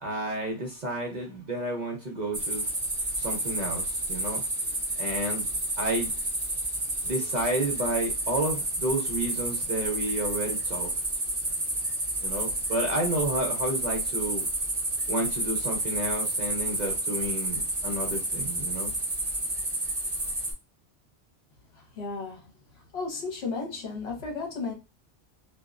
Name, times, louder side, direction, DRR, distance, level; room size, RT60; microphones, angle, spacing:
voice 1, 0.0-2.7 3.2-4.4 5.0-5.5 5.8-6.1 7.0-10.9 12.2-14.4 15.1-18.9, right 1 dB, 45° right, 0 dB, 0.6 m, -31 dB
sound 1, 2.3-20.5, right 1 dB, 10° right, 1.1 m, -30 dB
voice 2, 21.8-22.6 22.9-24.7, left 4 dB, 60° left, 0 dB, 1.1 m, -34 dB
2.8 x 2.3 x 2.4 m, 0.28 s
omnidirectional pair, 1.2 m